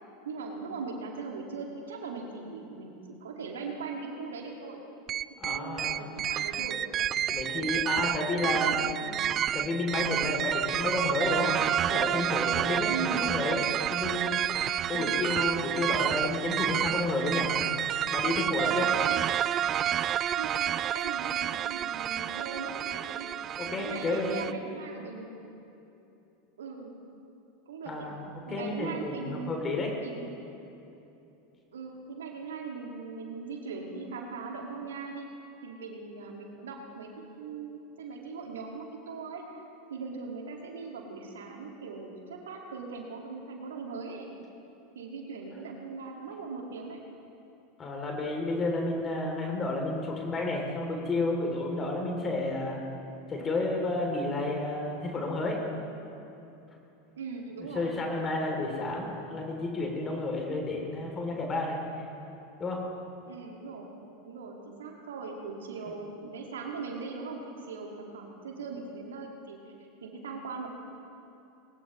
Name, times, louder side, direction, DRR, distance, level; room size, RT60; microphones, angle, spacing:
voice 1, 0.3-4.8 5.4-6.8 7.4-7.7 8.4-9.3 12.9-13.4 14.9-15.3 19.0-19.3 20.3-23.3 23.7-25.4 26.6-27.0 27.7-28.2 28.5-29.5 30.0-30.3 31.7-35.3 35.6-39.6 39.9-44.3 44.9-47.0 57.2-57.9 63.2-63.9 64.3-69.7 70.0-70.7, right 4 dB, 75° right, 1 dB, 2.0 m, -40 dB
sound 1, 5.1-24.5, right 10 dB, 35° right, 0.3 m, -29 dB
voice 2, 5.4-6.1 7.3-8.9 9.5-11.6 11.9-12.9 13.2-13.6 13.9-14.4 14.9-17.5 18.1-18.9 23.6-24.4 27.9-29.9 47.8-52.8 53.3-55.6 57.6-61.8 62.6-62.8, left 2 dB, 25° left, 0 dB, 3.0 m, -31 dB
20.0 x 20.0 x 3.2 m, 2.9 s
figure-of-eight pair, 85°, 0 cm